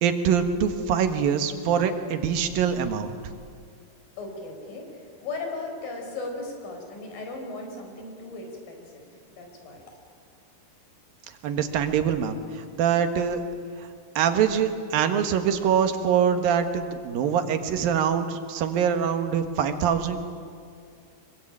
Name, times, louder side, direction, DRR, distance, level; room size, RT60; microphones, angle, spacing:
voice 1, 0.0-3.1 11.4-13.4 14.2-20.2, right 7 dB, 85° right, 7 dB, 3.3 m, -24 dB
voice 2, 4.2-10.0, left 3 dB, 80° left, 2 dB, 6.1 m, -37 dB
25.5 x 23.0 x 8.9 m, 2.3 s
omnidirectional pair, 4.0 m